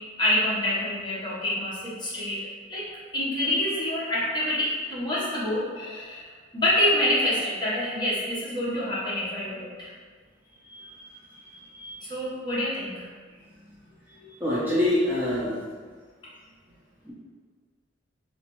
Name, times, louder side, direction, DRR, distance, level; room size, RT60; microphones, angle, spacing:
voice 1, 0.2-2.4 2.7-9.9 12.0-13.1, left 1 dB, 25° left, -8 dB, 1.0 m, -27 dB
voice 2, 10.7-11.0 11.5-11.9 14.4-15.5 17.1-17.2, left 1 dB, 10° right, -9 dB, 0.6 m, -26 dB
3.2 x 3.1 x 3.0 m, 1.5 s
head